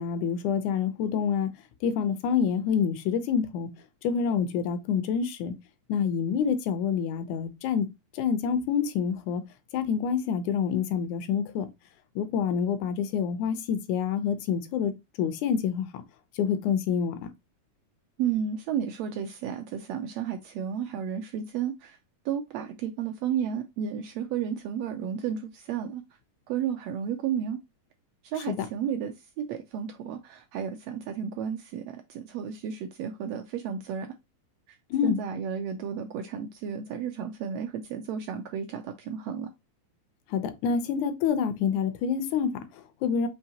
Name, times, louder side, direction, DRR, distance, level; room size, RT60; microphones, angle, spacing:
voice 1, 0.0-1.5 1.8-3.7 4.0-5.5 5.9-7.9 8.1-9.4 9.7-11.7 12.2-14.9 15.2-16.0 16.4-17.3 28.5-28.7 34.9-35.2 40.3-43.3, left 7 dB, 85° left, 2.1 m, -27 dB
voice 2, 18.2-22.0 22.2-26.0 26.5-27.6 28.2-34.1 35.0-39.5, right 8 dB, 80° right, 1.5 m, -32 dB
5.8 x 2.8 x 2.8 m
omnidirectional pair, 3.4 m